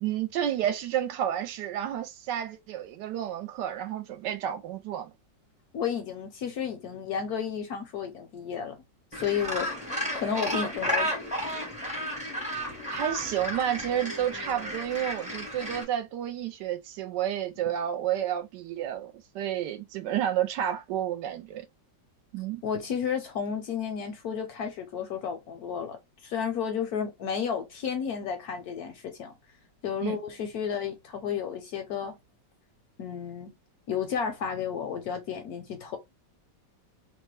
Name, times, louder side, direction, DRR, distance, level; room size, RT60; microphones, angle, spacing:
voice 1, 0.0-5.1 12.9-21.7 22.3-22.6 30.0-30.2, right 10 dB, 75° right, 1.2 m, -30 dB
voice 2, 5.7-8.8 9.1-9.7 10.1-11.1 22.6-29.3 29.8-32.2 33.0-33.6 33.9-36.0, left 7 dB, 70° left, 1.0 m, -32 dB
Gull seagull, 9.1-15.8, equal, 10° right, 0.5 m, -33 dB
2.9 x 2.1 x 3.1 m
omnidirectional pair, 2.0 m